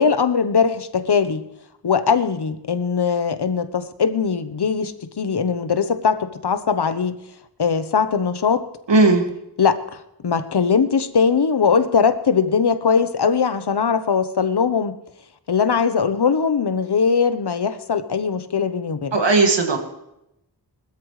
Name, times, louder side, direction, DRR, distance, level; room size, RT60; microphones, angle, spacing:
voice 1, 0.0-1.4 1.8-7.2 7.6-8.7 9.6-14.9 15.5-19.2, left 6 dB, 70° left, 11 dB, 1.0 m, -20 dB
voice 2, 8.9-9.2 19.1-19.8, right 3 dB, 90° right, 3 dB, 2.3 m, -16 dB
20.0 x 13.0 x 3.2 m, 0.84 s
wide cardioid pair, 80°, 42 cm